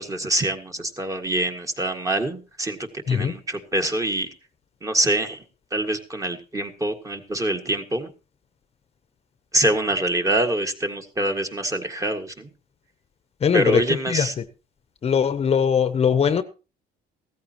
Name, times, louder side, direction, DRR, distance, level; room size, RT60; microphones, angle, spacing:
voice 1, 0.0-4.3 4.8-5.4 5.7-8.1 9.5-12.5 13.5-14.3, right 1 dB, 20° right, 1.8 m, -25 dB
voice 2, 13.4-14.4 15.0-16.4, left 7 dB, 35° left, 0.9 m, -21 dB
16.5 x 14.0 x 3.0 m
cardioid pair, 110°, 17 cm